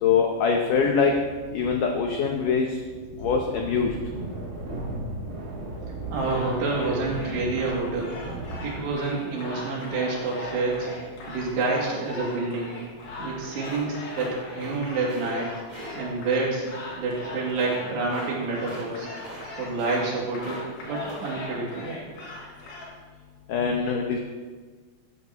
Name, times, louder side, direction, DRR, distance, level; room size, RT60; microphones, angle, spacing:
voice 1, 0.0-1.2 1.5-2.7 3.2-4.0 23.5-24.2, left 6 dB, 85° left, 2 dB, 1.8 m, -23 dB
sound 1, 0.7-9.1, right 2 dB, 45° right, 1.2 m, -37 dB
sound 2, 6.1-22.9, left 2 dB, 70° left, 5.0 m, -40 dB
voice 2, 6.1-8.2 8.6-10.9 11.3-12.7 13.2-15.5 16.0-16.6 17.0-19.1 19.6-20.6 20.8-22.0, right 3 dB, 75° right, -4 dB, 4.5 m, -28 dB
sound 3, 13.6-14.8 15.0-15.3 15.7-15.9 17.5-17.8 18.1-18.3 18.6-18.9 19.1-19.5 19.7-20.6 20.9-21.3, right 1 dB, 15° right, 1.9 m, -42 dB
14.5 x 10.5 x 3.0 m, 1.4 s
omnidirectional pair, 4.9 m